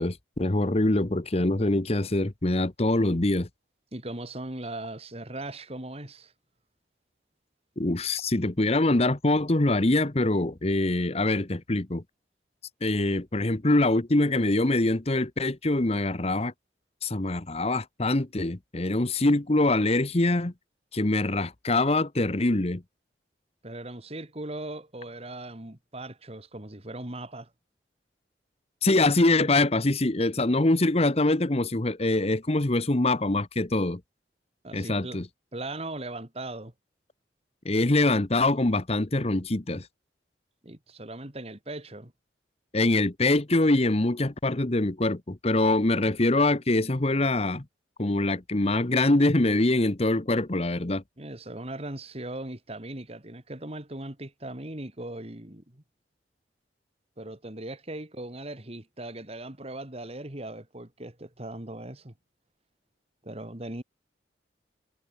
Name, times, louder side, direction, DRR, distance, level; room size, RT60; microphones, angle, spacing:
voice 1, 0.0-3.5 7.8-12.0 12.8-16.5 17.0-20.5 20.9-22.8 28.8-34.0 34.7-35.3 37.6-39.9 42.7-47.6 48.0-51.0, left 2 dB, 35° left, 1.1 m, -24 dB
voice 2, 3.9-6.3 23.6-27.5 34.6-35.2 35.5-36.7 40.6-42.1 51.2-55.8 57.2-62.1 63.2-63.8, right 1 dB, 35° right, 2.3 m, -39 dB
head